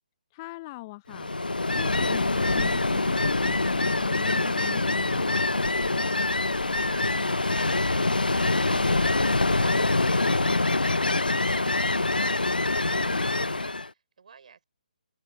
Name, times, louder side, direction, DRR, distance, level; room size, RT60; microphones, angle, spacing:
voice 1, 0.3-1.3 1.7-5.3, left 22 dB, 25° left, 0.6 m, -41 dB
Ocean, 1.1-13.9, left 2 dB, 85° left, 0.5 m, -25 dB
voice 2, 5.6-14.6, right 6 dB, 55° right, 5.5 m, -53 dB
open air
figure-of-eight pair, 140°, 5 cm